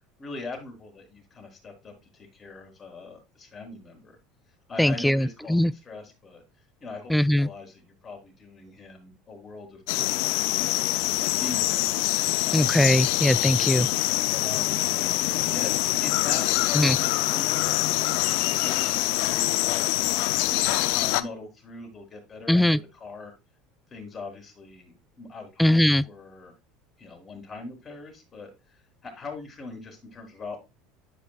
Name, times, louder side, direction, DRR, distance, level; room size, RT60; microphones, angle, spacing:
voice 1, 0.2-4.2 4.7-6.4 6.8-11.9 12.4-12.9 14.3-14.8 15.4-19.9 20.5-23.3 23.9-26.5 27.0-28.5 29.0-30.6, left 3 dB, 30° left, 4.0 m, -42 dB
voice 2, 4.8-5.7 7.1-7.5 12.5-13.9 16.8-17.0 22.5-22.8 25.6-26.0, left 1 dB, 5° left, 0.3 m, -21 dB
sound 1, 9.9-21.2, left 17 dB, 70° left, 0.5 m, -25 dB
10.5 x 5.3 x 2.4 m
hypercardioid pair, 85°, 0 cm